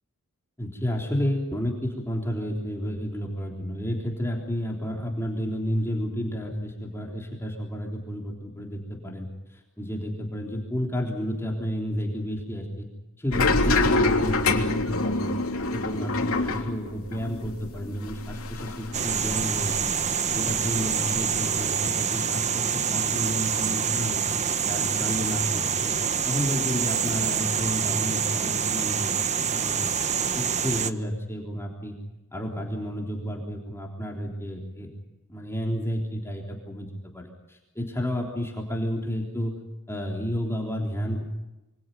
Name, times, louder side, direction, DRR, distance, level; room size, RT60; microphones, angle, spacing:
voice 1, 0.6-12.9 13.2-15.3 15.7-24.2 24.7-26.0 26.3-29.1 29.5-30.0 30.4-32.0 32.3-34.9 35.3-36.9 37.1-39.6 39.9-41.2, equal, 10° left, -1 dB, 3.6 m, -31 dB
sound 1, 13.3-20.0 20.3-21.7, left 2 dB, 70° left, 3.2 m, -26 dB
sound 2, 18.9-30.9, right 7 dB, 35° right, 1.1 m, -26 dB
27.5 x 25.0 x 5.4 m, 1.0 s
head